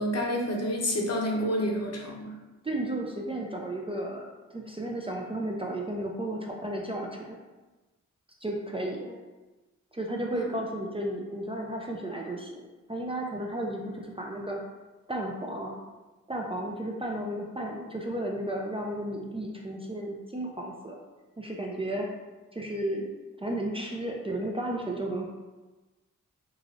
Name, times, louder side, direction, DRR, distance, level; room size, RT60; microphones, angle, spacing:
voice 1, 0.0-2.4 10.4-10.5, equal, 50° left, -1 dB, 0.7 m, -29 dB
voice 2, 2.6-7.4 8.4-9.2 9.9-14.6 15.1-15.7 16.3-21.0 21.4-22.1 22.5-23.1 23.4-25.2, right 1 dB, 20° right, -1 dB, 0.4 m, -33 dB
3.1 x 2.4 x 2.5 m, 1.2 s
cardioid pair, 50°, 32 cm